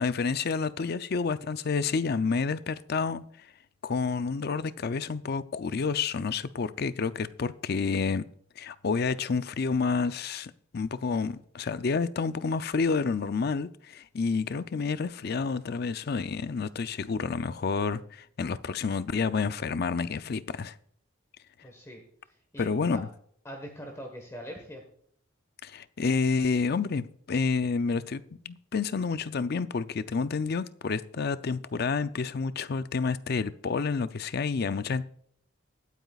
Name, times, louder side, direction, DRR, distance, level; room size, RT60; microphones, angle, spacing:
voice 1, 0.0-3.5 3.8-8.3 8.6-20.7 22.6-23.1 25.6-35.0, left 4 dB, 50° left, 0.5 m, -29 dB
voice 2, 21.6-23.0 23.4-24.8, equal, 15° left, 1.3 m, -43 dB
24.5 x 9.2 x 2.4 m
head